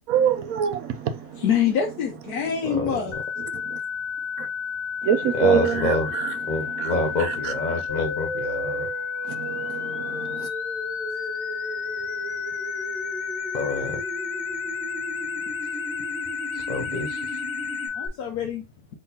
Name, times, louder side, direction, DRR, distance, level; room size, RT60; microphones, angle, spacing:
voice 1, 0.1-1.1 4.4-4.5 5.0-6.3 6.8-6.9 9.3-9.5 9.8-10.5, right 8 dB, 70° right, 1.0 m, -24 dB
voice 2, 1.3-3.1 17.9-18.7, left 8 dB, 85° left, 1.3 m, -25 dB
voice 3, 2.7-3.0 5.3-6.1 6.5-8.9 13.5-14.0 16.5-17.3, left 2 dB, 70° left, 0.4 m, -27 dB
sound 1, 3.1-18.1, left 7 dB, 50° left, 0.8 m, -31 dB
sound 2, 7.9-17.9, right 2 dB, 40° right, 1.4 m, -36 dB
3.8 x 3.6 x 2.7 m
omnidirectional pair, 1.6 m